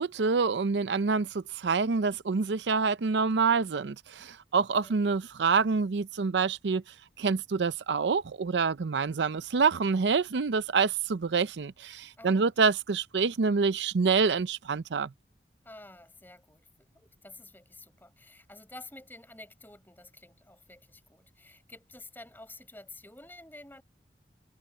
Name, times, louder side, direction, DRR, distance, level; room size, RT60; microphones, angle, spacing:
voice 1, 0.0-6.8 7.2-15.1, right 5 dB, 85° right, 0.5 m, -27 dB
voice 2, 4.6-5.0 12.2-12.5 15.6-23.8, left 2 dB, 10° left, 5.2 m, -50 dB
head